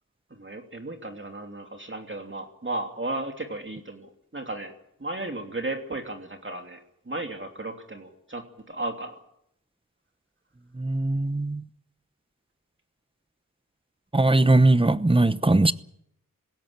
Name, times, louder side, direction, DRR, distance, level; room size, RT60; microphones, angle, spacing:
voice 1, 0.3-4.7 5.0-9.2, right 2 dB, 35° right, 3.0 m, -35 dB
voice 2, 10.8-11.6 14.1-15.7, right 2 dB, 15° right, 0.9 m, -20 dB
20.5 x 16.5 x 8.7 m
wide cardioid pair, 65°, 33 cm